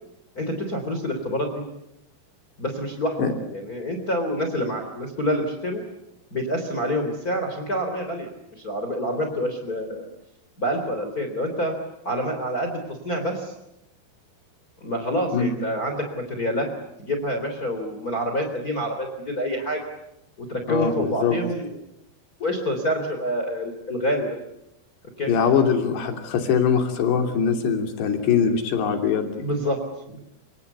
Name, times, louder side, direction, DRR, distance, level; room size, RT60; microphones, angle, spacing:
voice 1, 0.4-1.6 2.6-3.2 3.5-5.8 6.3-10.1 10.6-11.7 12.0-13.5 14.8-16.7 17.0-19.8 20.4-21.8 22.4-24.4 25.2-25.3 29.4-29.8 30.1-30.2, equal, 25° left, 5 dB, 3.5 m, -27 dB
voice 2, 20.7-21.4 25.3-29.5, left 6 dB, 85° left, 5 dB, 5.2 m, -22 dB
26.5 x 24.5 x 8.2 m, 0.85 s
omnidirectional pair, 4.7 m